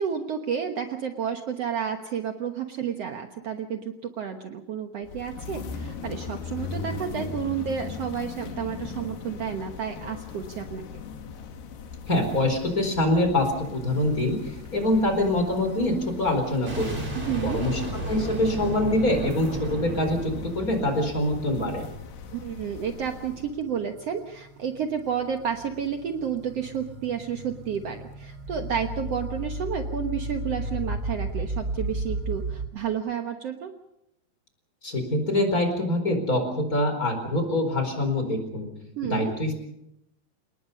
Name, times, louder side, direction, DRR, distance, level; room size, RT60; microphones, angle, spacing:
voice 1, 0.0-10.9 17.3-17.6 22.3-33.7 39.0-39.3, right 8 dB, 85° right, 5 dB, 1.4 m, -31 dB
sound 1, 5.0-23.6, left 5 dB, 75° left, 3.9 m, -39 dB
voice 2, 12.1-14.4 14.7-17.0 17.4-21.9 34.8-38.7 39.1-39.5, left 1 dB, 20° left, 6 dB, 4.4 m, -25 dB
sound 2, 13.9-14.0 14.6-14.7 15.6-15.7 18.9-19.3 20.8-20.9 21.7-32.7, right 1 dB, 55° right, 0.7 m, -35 dB
Boom, 16.7-21.5, equal, 30° right, 7.1 m, -33 dB
29.0 x 19.5 x 5.5 m, 0.83 s
omnidirectional pair, 4.7 m